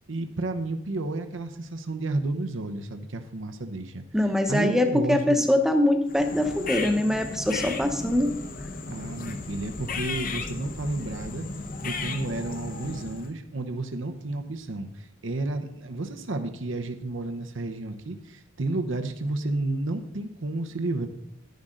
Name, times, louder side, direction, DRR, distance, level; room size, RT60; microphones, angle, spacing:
voice 1, 0.1-4.0 4.5-5.5 8.9-11.5 11.8-21.1, right 2 dB, 65° right, 7 dB, 0.8 m, -31 dB
voice 2, 4.1-8.3, left 1 dB, ahead, 5 dB, 0.9 m, -23 dB
sound 1, 6.1-13.3, left 3 dB, 40° left, 0.8 m, -35 dB
11.0 x 10.5 x 3.8 m, 0.78 s
head